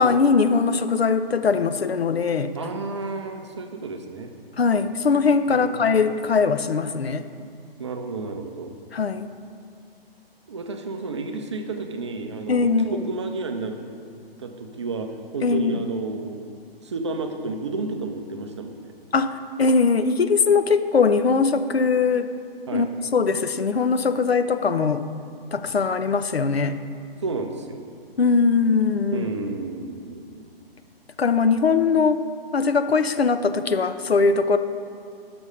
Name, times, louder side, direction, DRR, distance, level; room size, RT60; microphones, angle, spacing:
voice 1, 0.0-2.5 4.6-7.2 8.9-9.3 12.5-13.0 15.4-15.8 19.1-22.3 22.7-22.9 23.1-25.1 25.5-26.8 28.2-29.3 31.2-32.2 32.5-34.6, left 4 dB, 80° left, 11 dB, 0.6 m, -21 dB
voice 2, 2.6-4.3 5.5-5.7 7.8-8.7 10.5-13.8 14.4-16.5 16.8-18.9 22.7-22.9 27.2-27.8 29.1-30.5, right 3 dB, 30° right, 5 dB, 0.5 m, -31 dB
6.3 x 6.1 x 5.3 m, 2.5 s
figure-of-eight pair, 135°, 30 cm